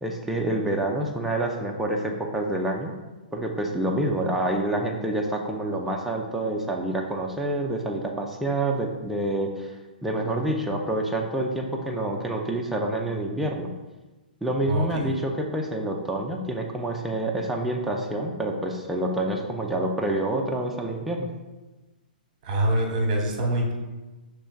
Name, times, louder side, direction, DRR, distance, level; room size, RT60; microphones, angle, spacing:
voice 1, 0.0-2.9 3.3-9.7 10.0-13.7 14.4-21.3, right 1 dB, ahead, 0 dB, 0.4 m, -27 dB
voice 2, 22.4-23.7, right 1 dB, 35° right, 1 dB, 1.0 m, -24 dB
6.0 x 3.2 x 2.2 m, 1.2 s
figure-of-eight pair, 115°, 5 cm